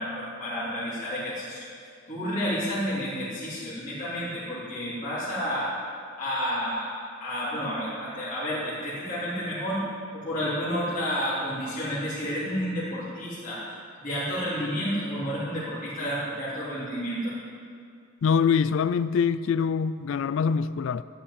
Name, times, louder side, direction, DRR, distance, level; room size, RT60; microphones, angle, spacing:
voice 1, 0.0-1.6 2.1-5.7 6.2-6.9 7.2-9.8 10.1-13.6 14.0-17.3, equal, 40° left, 3.5 m, -30 dB
voice 2, 18.2-21.0, left 6 dB, 70° left, 0.3 m, -24 dB
13.0 x 5.9 x 9.7 m
head